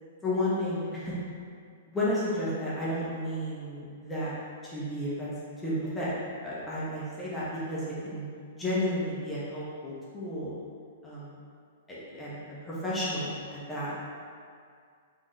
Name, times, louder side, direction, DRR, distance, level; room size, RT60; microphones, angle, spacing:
voice 1, 0.2-1.1 1.9-4.3 4.6-8.2 8.5-10.5 11.0-11.3 11.9-12.4 12.6-14.1, left 1 dB, 15° left, -9 dB, 1.1 m, -32 dB
4.0 x 3.7 x 3.3 m, 2.2 s
hypercardioid pair, 110°, 0 cm